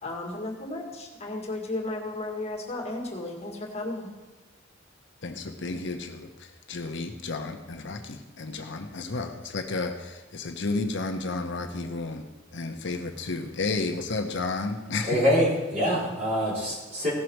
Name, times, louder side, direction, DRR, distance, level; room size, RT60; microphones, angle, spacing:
voice 1, 0.0-4.1, left 2 dB, 35° left, -2 dB, 2.0 m, -34 dB
voice 2, 5.2-12.2 12.5-15.2, left 3 dB, 65° left, 4 dB, 0.9 m, -32 dB
voice 3, 15.1-17.1, equal, 35° right, -5 dB, 3.6 m, -25 dB
16.5 x 6.3 x 4.6 m, 1.2 s
head